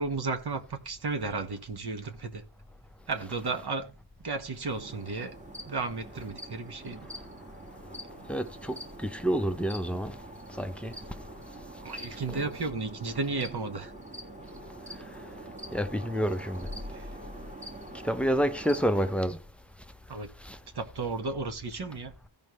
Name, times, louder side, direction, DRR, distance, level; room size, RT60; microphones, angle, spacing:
voice 1, 0.0-2.4 3.1-5.4 5.6-7.1 11.8-13.9 16.9-17.1 20.1-20.3 20.7-22.1, right 3 dB, 55° right, 1.6 m, -34 dB
sound 1, 4.7-19.1, right 1 dB, 15° right, 1.7 m, -45 dB
voice 2, 8.3-10.2 10.6-10.9 12.3-12.5 15.7-16.7 18.0-19.4 20.4-20.6, equal, 5° left, 0.7 m, -29 dB
16.0 x 5.5 x 3.1 m
wide cardioid pair, 160°, 48 cm